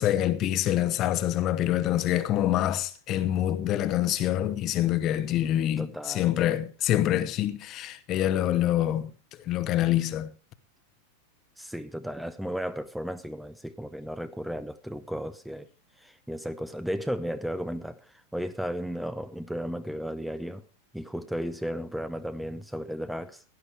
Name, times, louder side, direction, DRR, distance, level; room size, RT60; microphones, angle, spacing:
voice 1, 0.0-9.1 9.5-10.3, left 12 dB, 35° left, 0.9 m, -26 dB
voice 2, 5.8-6.3 11.6-15.7 16.0-20.6 20.9-23.4, equal, ahead, 0.6 m, -34 dB
16.5 x 11.5 x 3.3 m
figure-of-eight pair, 90°, 0 cm